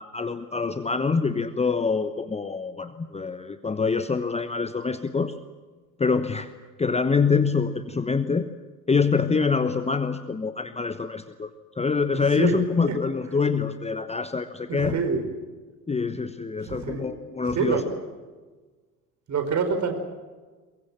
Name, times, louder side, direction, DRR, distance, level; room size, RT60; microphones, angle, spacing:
voice 1, 0.0-5.4 6.0-6.5 6.8-8.5 8.9-11.5 11.7-14.9 15.9-17.8, left 5 dB, 15° left, 10 dB, 1.1 m, -25 dB
voice 2, 12.1-12.6 12.9-13.0 14.7-15.3 16.7-17.1 17.5-17.8 19.3-19.9, right 5 dB, 35° right, 6 dB, 4.9 m, -26 dB
23.0 x 22.5 x 7.6 m, 1.3 s
figure-of-eight pair, 70°, 47 cm